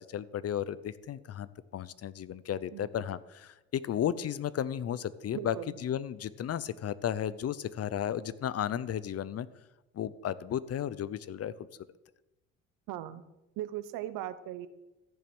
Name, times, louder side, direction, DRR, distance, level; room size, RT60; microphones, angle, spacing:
voice 1, 0.0-9.5 9.9-11.7, left 10 dB, 45° left, 18 dB, 0.7 m, -34 dB
voice 2, 5.3-5.8 12.9-13.2 13.6-14.7, right 13 dB, 75° right, 14 dB, 0.9 m, -38 dB
14.0 x 7.0 x 6.1 m, 1.0 s
supercardioid pair, 75°, 33 cm